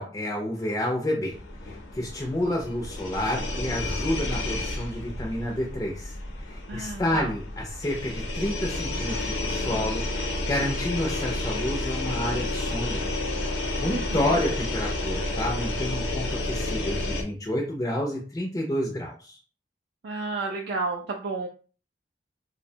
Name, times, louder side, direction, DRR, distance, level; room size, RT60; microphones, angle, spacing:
voice 1, 0.0-1.4 1.7-13.1 13.8-19.4, left 1 dB, 20° left, -1 dB, 0.4 m, -30 dB
sound 1, 1.3-17.2, left 2 dB, 80° left, 0.6 m, -31 dB
voice 2, 6.7-7.3 13.9-14.3 20.0-21.5, right 3 dB, 60° right, 1 dB, 0.3 m, -31 dB
2.6 x 2.1 x 2.7 m, 0.37 s
head